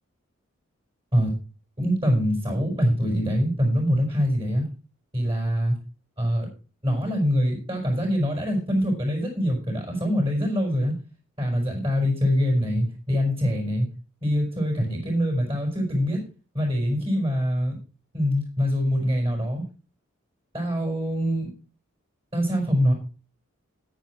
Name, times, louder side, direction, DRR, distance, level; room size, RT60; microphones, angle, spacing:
voice 1, 1.8-4.7 5.1-5.7 6.2-6.5 6.8-10.9 11.4-13.9 14.2-16.2 16.5-17.8 18.1-19.6 20.5-21.5 22.3-22.9, equal, 25° right, 0 dB, 5.5 m, -24 dB
10.0 x 9.9 x 4.7 m, 0.35 s
head